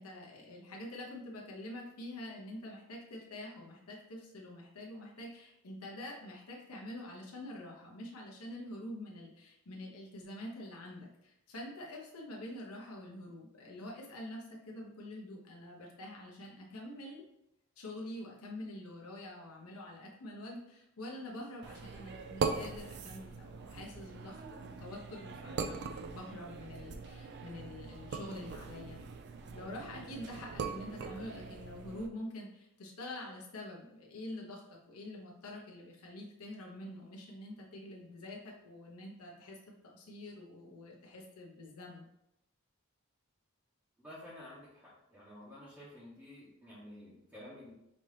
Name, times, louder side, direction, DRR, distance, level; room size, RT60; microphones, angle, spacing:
voice 1, 0.0-17.2 17.8-29.0 29.5-39.6 39.9-42.1, left 1 dB, 85° left, -1 dB, 0.9 m, -46 dB
sound 1, 21.6-32.1, right 4 dB, 50° right, 0.4 m, -41 dB
voice 2, 44.0-47.7, left 1 dB, 10° right, -10 dB, 1.1 m, -51 dB
5.3 x 2.8 x 3.2 m, 0.82 s
head